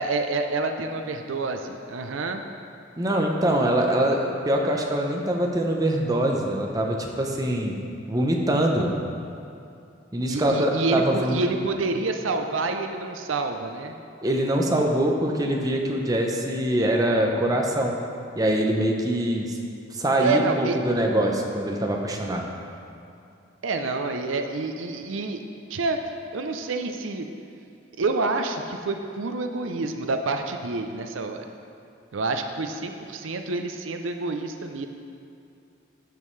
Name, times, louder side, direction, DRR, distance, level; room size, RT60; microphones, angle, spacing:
voice 1, 0.0-2.4 10.3-13.9 20.2-20.8 23.6-25.4 25.7-26.0 26.3-27.3 28.0-31.5 32.1-34.9, right 3 dB, 85° right, 6 dB, 0.5 m, -28 dB
voice 2, 3.0-7.8 8.1-8.9 10.1-11.4 14.2-18.0 18.3-19.6 19.9-22.5, right 1 dB, 20° right, 0 dB, 0.7 m, -23 dB
14.0 x 5.3 x 3.2 m, 2.6 s
head